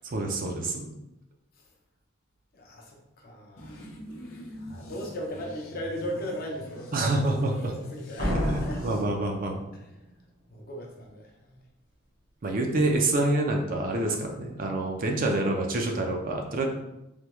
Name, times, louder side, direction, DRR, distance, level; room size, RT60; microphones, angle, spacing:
voice 1, 0.0-0.9 6.9-7.7 8.3-9.6 12.4-16.7, right 2 dB, 45° right, 2 dB, 0.4 m, -27 dB
voice 2, 2.5-3.7 4.5-8.3 8.6-8.8 10.5-11.6, equal, 50° left, 0 dB, 0.6 m, -37 dB
sound 1, 3.6-9.0, left 1 dB, 85° left, 0.6 m, -44 dB
Slam, 8.2-10.1, equal, 60° right, 0.9 m, -31 dB
3.4 x 2.2 x 2.9 m, 0.90 s
head